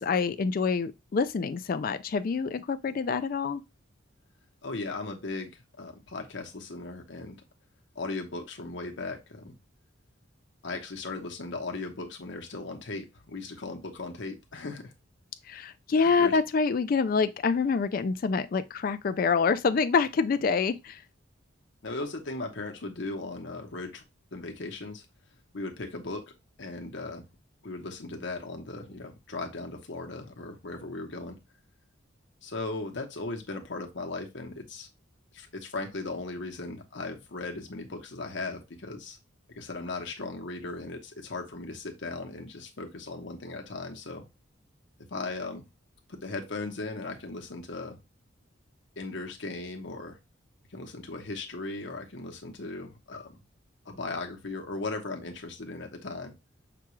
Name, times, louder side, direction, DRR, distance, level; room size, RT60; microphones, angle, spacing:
voice 1, 0.0-3.6 15.5-21.0, left 5 dB, 45° left, 0.3 m, -26 dB
voice 2, 4.6-5.5 5.8-7.4 7.9-9.6 10.6-14.9 15.5-15.7 16.0-16.4 21.8-24.0 24.3-25.0 25.5-26.3 26.6-27.3 27.6-31.4 32.4-34.9 35.3-39.2 39.5-44.2 45.1-45.6 46.1-48.0 49.0-50.2 50.7-53.4 53.9-56.3, left 3 dB, 65° left, 0.9 m, -37 dB
5.9 x 2.3 x 3.0 m
head